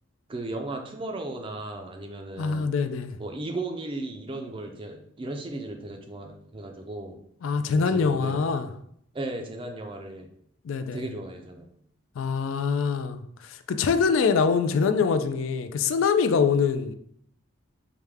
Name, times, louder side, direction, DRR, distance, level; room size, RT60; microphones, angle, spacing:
voice 1, 0.3-2.7 3.2-7.2 7.7-8.4 9.1-10.3 10.9-11.7, right 2 dB, 25° right, 3 dB, 0.4 m, -35 dB
voice 2, 2.4-3.2 7.4-8.7 10.6-11.0 12.2-13.2 13.5-16.9, left 5 dB, 70° left, 9 dB, 0.4 m, -24 dB
4.8 x 2.2 x 3.4 m, 0.69 s
head